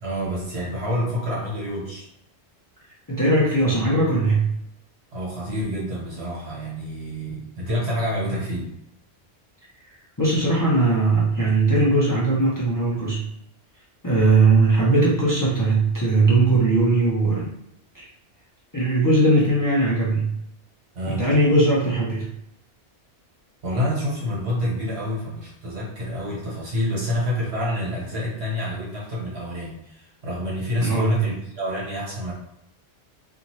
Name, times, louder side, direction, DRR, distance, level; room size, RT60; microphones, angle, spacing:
voice 1, 0.0-2.1 5.1-8.7 20.9-21.3 23.6-32.3, equal, 70° right, -5 dB, 1.4 m, -28 dB
voice 2, 3.1-4.5 10.2-13.2 14.0-17.5 17.9-18.0 18.7-20.3 21.1-22.2 30.8-31.2, right 2 dB, 25° left, -7 dB, 0.6 m, -19 dB
2.7 x 2.5 x 3.0 m, 0.78 s
omnidirectional pair, 1.1 m